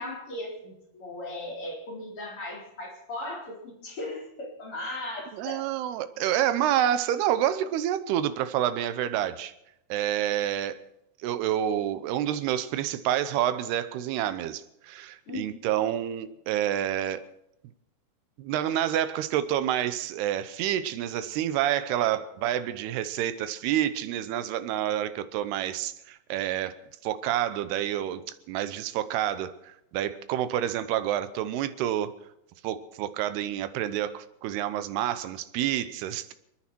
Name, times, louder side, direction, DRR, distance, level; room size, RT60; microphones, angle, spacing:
voice 1, 0.0-5.6 15.3-15.6 22.0-22.1, left 2 dB, 35° left, -3 dB, 4.6 m, -37 dB
voice 2, 5.3-9.5 9.9-10.8 11.2-17.2 18.4-26.7 27.0-28.2 28.5-32.1 32.6-36.3, right 11 dB, 85° right, 12 dB, 2.9 m, -28 dB
29.0 x 10.0 x 4.6 m, 0.84 s
omnidirectional pair, 4.5 m